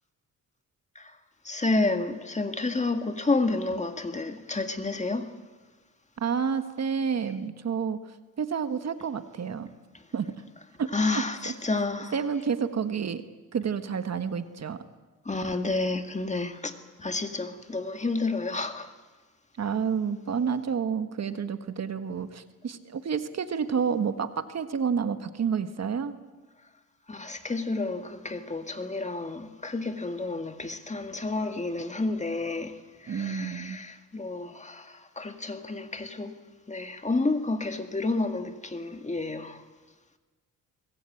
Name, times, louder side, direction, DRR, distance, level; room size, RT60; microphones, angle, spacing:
voice 1, 1.4-5.4 9.9-10.0 10.9-12.2 15.3-18.9 27.1-36.4 36.7-39.6, left 3 dB, 20° left, 1.8 m, -30 dB
voice 2, 6.2-8.0 8.4-9.7 10.1-10.3 10.8-11.2 12.1-13.2 13.5-14.8 19.6-26.1 33.1-33.8, right 6 dB, 50° right, 1.5 m, -29 dB
23.5 x 20.5 x 8.7 m
cardioid pair, 105°, 33 cm